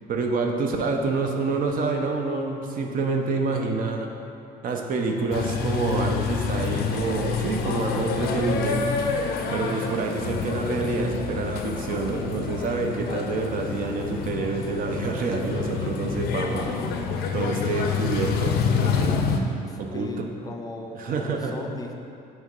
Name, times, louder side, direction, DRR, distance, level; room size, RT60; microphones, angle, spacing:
voice 1, 0.1-4.1 4.6-9.2 9.5-16.8 17.3-19.2 19.8-20.3 20.9-21.5, right 3 dB, 55° right, 3 dB, 0.6 m, -27 dB
sound 1, 5.3-19.4, left 6 dB, 70° left, 0.5 m, -28 dB
voice 2, 19.7-21.9, left 2 dB, 20° left, 2 dB, 0.4 m, -37 dB
6.1 x 3.2 x 5.2 m, 2.6 s
cardioid pair, 110°, 17 cm